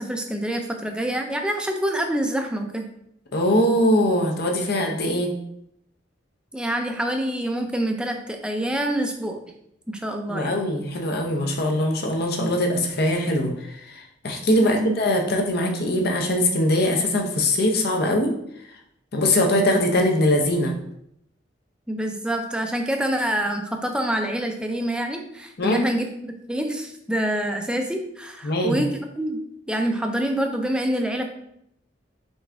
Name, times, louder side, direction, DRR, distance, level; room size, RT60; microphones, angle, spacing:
voice 1, 0.0-2.8 6.5-9.4 9.9-10.5 14.6-14.9 21.9-26.1 26.5-29.4 29.7-31.2, right 1 dB, 5° right, 3 dB, 0.5 m, -26 dB
voice 2, 3.3-5.3 10.3-18.3 19.1-20.7 25.6-25.9 28.4-28.9, left 1 dB, 60° left, 2 dB, 0.7 m, -22 dB
4.1 x 3.4 x 3.5 m, 0.74 s
head